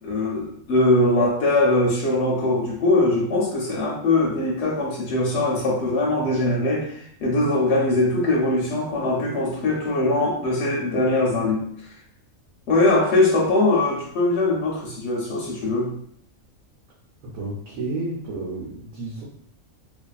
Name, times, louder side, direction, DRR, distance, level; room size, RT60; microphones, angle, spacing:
voice 1, 0.0-11.6 12.7-15.9, left 2 dB, 65° left, -2 dB, 0.8 m, -21 dB
voice 2, 17.2-19.2, right 2 dB, 80° right, -4 dB, 1.0 m, -31 dB
2.4 x 2.4 x 2.3 m, 0.65 s
omnidirectional pair, 1.4 m